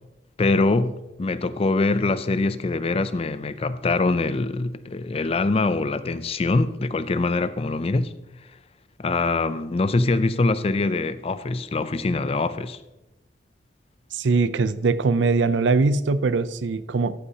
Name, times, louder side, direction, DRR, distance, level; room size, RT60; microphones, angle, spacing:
voice 1, 0.4-8.1 9.0-12.8, left 3 dB, 35° left, 0.4 m, -23 dB
voice 2, 14.1-17.1, right 4 dB, 90° right, 0.5 m, -21 dB
13.5 x 8.2 x 2.8 m
head